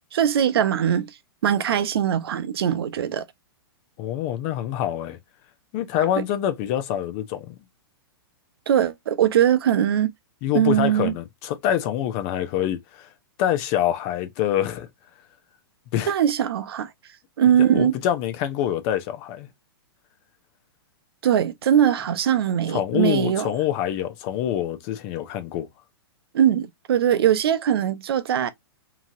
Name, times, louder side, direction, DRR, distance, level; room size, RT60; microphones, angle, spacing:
voice 1, 0.1-1.1 1.4-3.3 6.2-6.3 8.7-10.1 10.5-11.1 16.1-16.9 17.4-18.0 21.2-23.5 26.3-28.5, right 9 dB, 75° right, 0.6 m, -21 dB
voice 2, 4.0-5.2 5.7-7.5 10.4-13.1 13.4-14.9 15.9-16.1 17.7-19.5 22.7-25.7, left 11 dB, 35° left, 0.5 m, -25 dB
2.9 x 2.7 x 2.4 m
hypercardioid pair, 150°, 13 cm